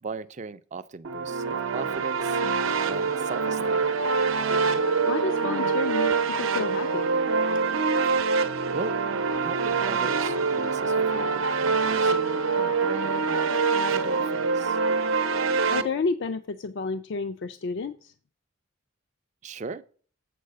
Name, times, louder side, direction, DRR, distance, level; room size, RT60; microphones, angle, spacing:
voice 1, 0.0-2.4 2.8-3.9 8.7-8.9 9.3-12.1 12.5-13.5 13.9-14.8 19.4-19.8, right 4 dB, 35° right, 0.4 m, -38 dB
sound 1, 1.0-15.8, right 4 dB, 70° right, 0.7 m, -25 dB
voice 2, 5.1-7.2 15.7-18.1, left 4 dB, 55° left, 0.4 m, -31 dB
7.6 x 4.7 x 6.4 m
head